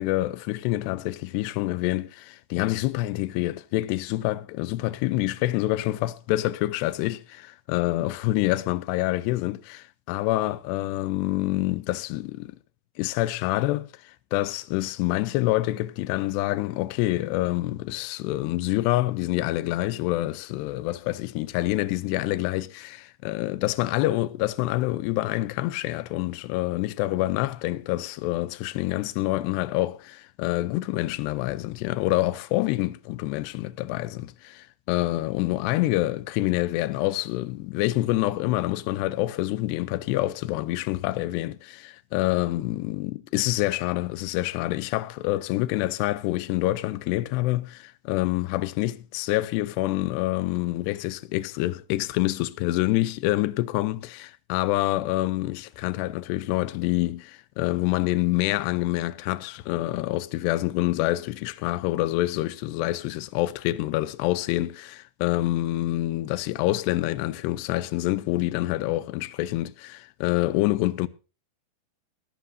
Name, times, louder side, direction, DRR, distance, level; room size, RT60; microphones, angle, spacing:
voice 1, 0.0-12.6 13.0-71.1, left 17 dB, 80° left, 2.8 m, -27 dB
22.0 x 11.5 x 2.7 m
omnidirectional pair, 4.9 m